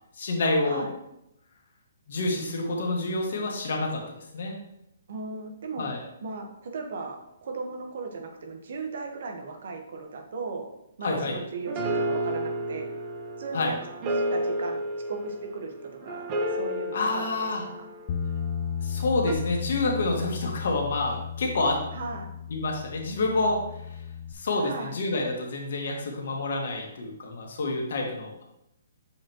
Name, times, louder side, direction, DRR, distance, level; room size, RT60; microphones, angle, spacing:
voice 1, 0.2-0.9 2.1-4.0 4.3-4.6 5.8-6.0 11.0-11.4 13.5-13.7 16.9-17.6 18.8-21.8 22.5-23.6 24.4-28.4, left 2 dB, 65° left, 0 dB, 1.7 m, -28 dB
voice 2, 5.1-5.9 6.2-10.7 11.0-12.9 13.4-13.8 14.0-14.8 15.1-17.4 17.6-17.9 21.9-22.3 24.6-25.0, right 3 dB, 60° right, 4 dB, 1.3 m, -37 dB
sound 1, 11.1-18.5 19.3-19.4, right 1 dB, 25° right, 0.8 m, -32 dB
Bass guitar, 18.1-24.3, left 7 dB, 35° left, 0.5 m, -34 dB
7.2 x 4.9 x 3.0 m, 0.83 s
hypercardioid pair, 155°, 0 cm